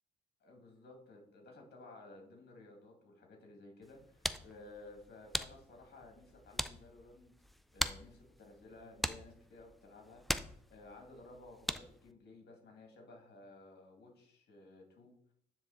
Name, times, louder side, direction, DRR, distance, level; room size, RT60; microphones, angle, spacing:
voice 1, 0.4-7.3 7.7-10.2 10.7-15.3, left 2 dB, 55° left, 1 dB, 2.6 m, -55 dB
sound 1, 3.8-12.1, equal, ahead, 0.4 m, -42 dB
9.6 x 3.7 x 4.2 m, 0.64 s
cardioid pair, 90°, 20 cm